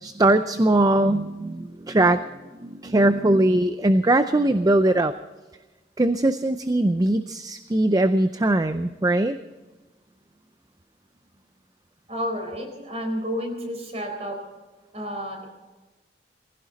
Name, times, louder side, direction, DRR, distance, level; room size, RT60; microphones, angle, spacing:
voice 1, 0.0-2.2 2.6-5.1 6.0-9.4, right 1 dB, 20° right, 10 dB, 0.5 m, -21 dB
voice 2, 12.1-14.4 14.9-15.5, equal, 35° right, 4 dB, 4.3 m, -30 dB
20.0 x 16.5 x 4.1 m, 1.2 s
head